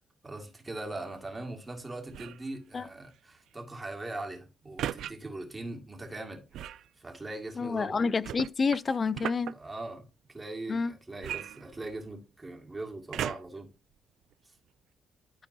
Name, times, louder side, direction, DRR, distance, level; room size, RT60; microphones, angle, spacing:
voice 1, 0.2-8.0 9.5-13.7, right 2 dB, 20° right, 2.0 m, -41 dB
sound 1, 2.1-2.5 4.8-5.1 6.5-6.9 8.2-9.5 11.2-12.2 13.1-13.7 14.3-14.4, right 11 dB, 75° right, 0.3 m, -36 dB
voice 2, 7.6-9.5 10.7-10.9, left 4 dB, 35° left, 0.3 m, -28 dB
12.5 x 4.4 x 2.7 m
cardioid pair, 90°, 0 cm